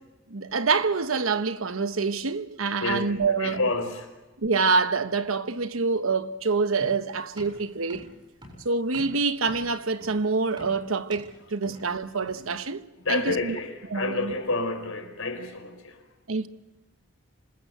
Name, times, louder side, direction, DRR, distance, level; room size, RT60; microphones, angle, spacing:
voice 1, 0.3-3.6 4.4-8.1 8.6-13.5 13.9-14.3 16.3-16.5, right 4 dB, 85° right, 1.0 m, -26 dB
voice 2, 2.8-4.1 11.6-11.7 12.3-12.6 13.0-16.0, left 3 dB, 85° left, 4.6 m, -30 dB
sound 1, 6.8-12.6, equal, 20° right, 7.3 m, -46 dB
26.5 x 20.0 x 8.0 m
head